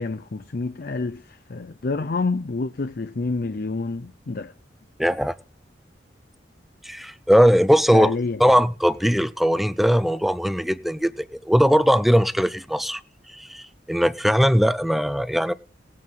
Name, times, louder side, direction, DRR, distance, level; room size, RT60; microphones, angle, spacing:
voice 1, 0.0-4.5 7.9-8.4, left 3 dB, 55° left, 0.6 m, -28 dB
voice 2, 5.0-5.4 6.8-13.0 13.3-15.5, equal, ahead, 0.4 m, -20 dB
19.0 x 7.6 x 3.8 m
head